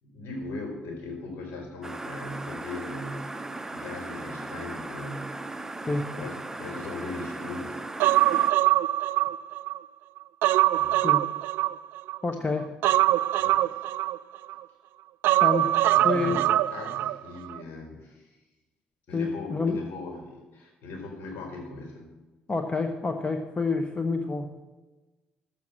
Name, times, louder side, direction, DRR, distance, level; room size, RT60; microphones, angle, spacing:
voice 1, 0.0-5.4 6.2-7.9 10.8-11.1 13.4-13.6 15.9-18.4 19.1-22.1, left 2 dB, 60° left, 2 dB, 4.1 m, -39 dB
sound 1, 1.8-8.5, right 2 dB, 15° right, 0.8 m, -37 dB
voice 2, 5.9-6.3 11.0-11.2 12.2-12.7 15.4-15.8 16.0-16.4 19.1-19.8 22.5-24.6, left 3 dB, 25° left, 6 dB, 1.2 m, -28 dB
Human voice, 8.0-9.8 10.2-12.2 12.8-14.6 15.2-17.2 17.5-17.6, right 15 dB, 70° right, 0.3 m, -23 dB
12.0 x 7.7 x 7.5 m, 1.2 s
hypercardioid pair, 55°, 4 cm